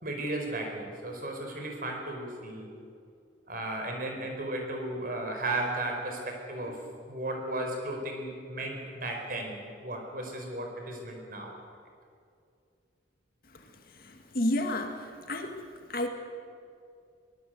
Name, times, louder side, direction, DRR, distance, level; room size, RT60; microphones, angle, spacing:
voice 1, 0.0-2.7 3.5-11.6, right 1 dB, 45° right, 2 dB, 4.8 m, -35 dB
voice 2, 14.0-15.6 15.9-16.1, left 1 dB, 50° left, 4 dB, 2.2 m, -31 dB
22.5 x 20.5 x 8.1 m, 2.4 s
head